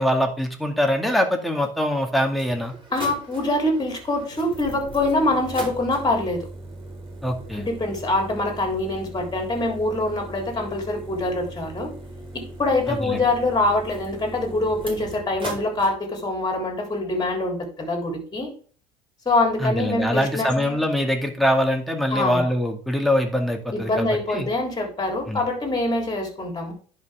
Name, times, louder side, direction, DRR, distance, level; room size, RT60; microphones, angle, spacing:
voice 1, 0.0-2.7 7.2-7.7 12.9-13.2 19.6-24.5 25.3-25.4, equal, ahead, 2 dB, 2.3 m, -23 dB
sound 1, 1.7-1.8 2.3-15.9, right 2 dB, 25° right, 3.7 m, -39 dB
voice 2, 2.9-6.5 7.5-11.9 12.3-18.5 19.3-20.8 22.1-22.5 23.7-26.7, left 2 dB, 20° left, 3 dB, 3.7 m, -24 dB
10.5 x 5.7 x 3.7 m, 0.43 s
hypercardioid pair, 85°, 20 cm